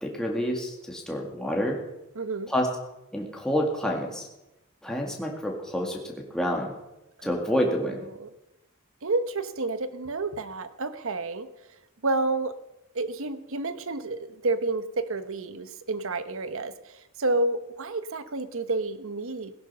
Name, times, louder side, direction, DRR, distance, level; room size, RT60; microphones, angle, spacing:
voice 1, 0.0-1.8 2.5-2.7 3.1-4.3 4.8-6.7 7.2-8.0, equal, 5° left, -1 dB, 2.1 m, -28 dB
voice 2, 2.2-2.5 7.2-7.3 7.8-8.3 9.0-11.5 12.0-12.5 12.9-19.5, right 2 dB, 70° right, 12 dB, 1.0 m, -30 dB
17.5 x 10.5 x 5.5 m, 0.94 s
head